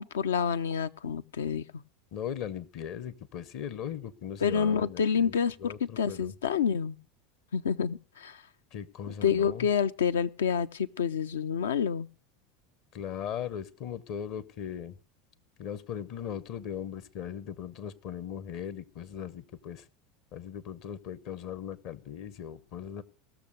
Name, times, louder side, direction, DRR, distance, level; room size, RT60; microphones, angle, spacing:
voice 1, 0.0-1.6 4.4-7.0 7.5-8.4 9.2-12.1, left 7 dB, 70° left, 13 dB, 0.5 m, -28 dB
voice 2, 2.1-5.3 5.6-6.3 8.7-9.7 12.9-15.0 15.6-19.8 20.3-23.0, left 9 dB, 50° left, 16 dB, 1.0 m, -38 dB
17.5 x 6.9 x 6.5 m, 0.40 s
figure-of-eight pair, 80°, 0 cm